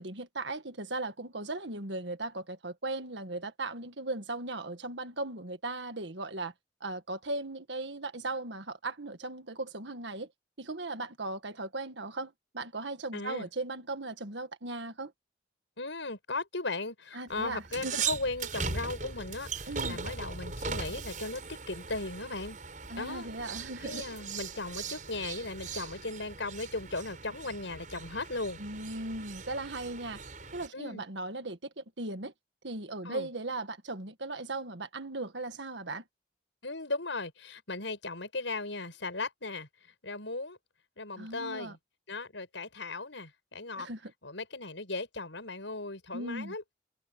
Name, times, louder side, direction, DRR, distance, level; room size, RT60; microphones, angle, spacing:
voice 1, 0.0-6.5 6.8-10.3 10.6-15.1 17.1-18.0 19.7-20.0 22.9-24.0 28.6-30.2 30.5-32.3 32.6-36.0 41.2-41.8 43.8-44.1 46.1-46.5, right 2 dB, 70° right, 1.8 m, -37 dB
voice 2, 13.1-13.5 15.8-22.6 22.9-23.3 23.8-28.6 30.7-31.0 33.0-33.3 36.6-39.7 40.0-40.6 41.0-41.8 42.1-43.9 44.2-46.6, left 3 dB, 80° left, 6.1 m, -37 dB
sound 1, 17.3-30.7, right 5 dB, 40° right, 6.6 m, -39 dB
head